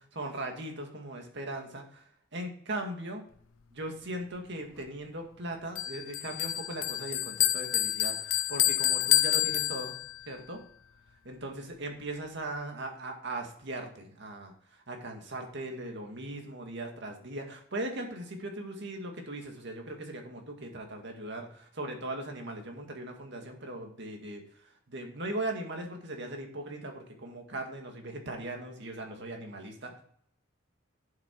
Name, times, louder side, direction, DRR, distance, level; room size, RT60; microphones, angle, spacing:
voice 1, 0.1-2.0 2.3-3.2 3.7-10.0 10.3-10.6 11.2-24.4 24.9-30.0, right 1 dB, 60° right, 3 dB, 1.9 m, -39 dB
Bell, 5.8-10.3, left 14 dB, 85° left, 0.6 m, -28 dB
8.8 x 7.6 x 4.6 m, 0.66 s
head